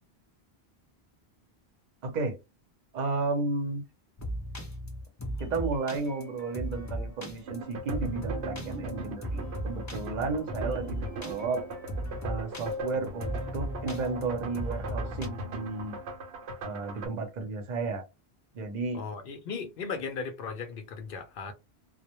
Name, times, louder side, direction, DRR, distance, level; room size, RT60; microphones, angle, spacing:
voice 1, 2.0-2.4 2.9-3.8 5.4-11.6 12.2-16.0 16.6-18.0 18.5-19.0, right 3 dB, 50° right, 0.7 m, -33 dB
sound 1, 4.2-15.3, right 1 dB, 25° left, 0.3 m, -37 dB
sound 2, 7.5-17.1, right 1 dB, 85° right, 0.9 m, -39 dB
voice 2, 18.9-21.5, left 5 dB, 65° left, 0.7 m, -37 dB
2.1 x 2.1 x 2.9 m
omnidirectional pair, 1.1 m